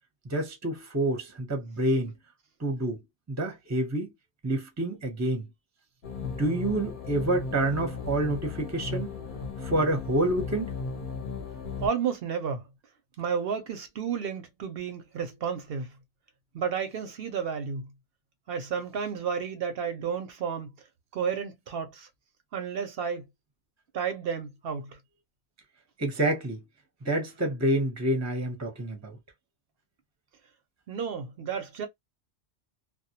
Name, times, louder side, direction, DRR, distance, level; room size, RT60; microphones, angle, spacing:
voice 1, 0.2-2.1 2.6-3.0 3.3-4.1 4.4-5.5 6.2-9.1 9.6-10.7 26.0-26.6 27.0-29.2, right 1 dB, 20° right, 0.6 m, -28 dB
sound 1, 6.0-11.9, left 4 dB, 50° left, 0.8 m, -36 dB
voice 2, 11.8-12.6 13.2-15.9 16.5-17.9 18.5-20.7 21.1-22.1 22.5-23.3 23.9-25.0 30.9-31.9, right 7 dB, 65° right, 0.7 m, -32 dB
2.2 x 2.1 x 2.7 m
omnidirectional pair, 1.2 m